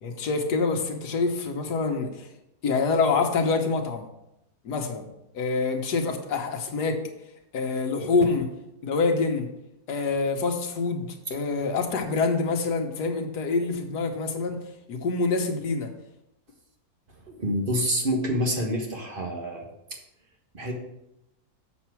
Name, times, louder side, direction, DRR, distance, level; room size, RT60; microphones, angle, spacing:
voice 1, 0.0-2.3 2.6-4.1 4.6-5.1 5.3-7.0 7.5-8.5 8.8-9.5 9.9-14.6 14.9-15.9, left 4 dB, 85° left, 4 dB, 1.6 m, -26 dB
voice 2, 17.3-19.6 20.5-20.7, equal, 35° right, 1 dB, 1.4 m, -27 dB
7.3 x 6.6 x 4.5 m, 0.85 s
omnidirectional pair, 1.7 m